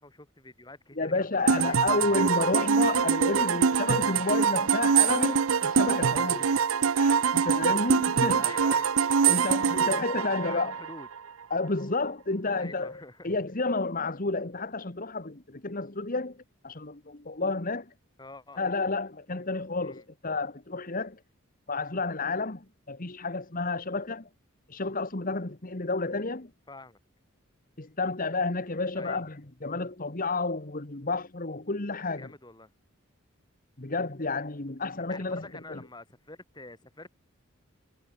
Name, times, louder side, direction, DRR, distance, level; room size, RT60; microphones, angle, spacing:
voice 1, 0.0-1.9 8.4-8.9 9.8-11.1 12.4-13.4 18.2-18.6 19.8-20.1 26.7-27.0 28.9-29.2 32.2-32.7 35.1-37.1, left 2 dB, 20° left, 4.8 m, -46 dB
voice 2, 1.0-6.5 7.0-8.5 9.3-10.7 11.5-12.9 13.2-16.4 16.6-17.9 18.6-21.2 21.7-24.3 24.7-26.5 27.8-32.3 33.8-35.8, left 3 dB, 40° left, 1.6 m, -31 dB
sound 1, 1.5-11.2, right 6 dB, 75° right, 0.6 m, -24 dB
head